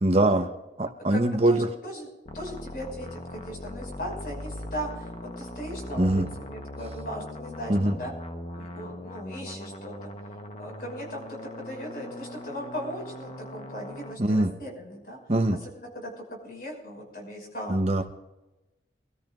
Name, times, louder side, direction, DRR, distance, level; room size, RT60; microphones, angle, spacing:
voice 1, 0.0-0.5 0.8-1.7 6.0-6.3 7.7-7.9 14.2-14.5 15.3-15.6 17.7-18.0, right 1 dB, 35° right, 6 dB, 0.8 m, -22 dB
voice 2, 1.1-2.1 2.3-8.1 8.6-9.9 10.6-15.2 15.5-17.8, equal, 55° left, 0 dB, 5.7 m, -38 dB
sound 1, 2.3-14.2, left 1 dB, 35° left, 1.0 m, -40 dB
25.0 x 13.5 x 2.5 m, 1.1 s
head